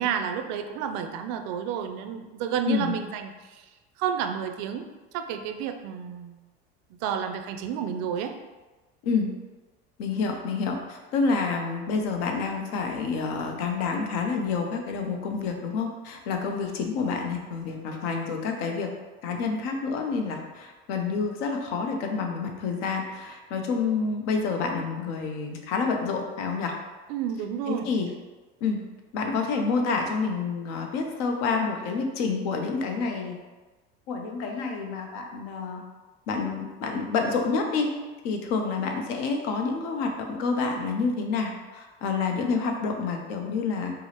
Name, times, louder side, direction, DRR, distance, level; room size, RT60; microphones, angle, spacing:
voice 1, 0.0-3.6 4.0-4.8 5.1-6.4 7.0-8.4 19.3-19.4 27.1-27.9, right 8 dB, 65° right, 7 dB, 0.4 m, -30 dB
voice 2, 10.0-18.9 19.2-26.8 27.7-28.1 28.6-28.8 29.1-33.4 34.1-35.8 36.3-37.9 38.2-43.9, left 4 dB, 70° left, 3 dB, 0.7 m, -28 dB
4.5 x 2.0 x 2.9 m, 1.2 s
supercardioid pair, 105°, 31 cm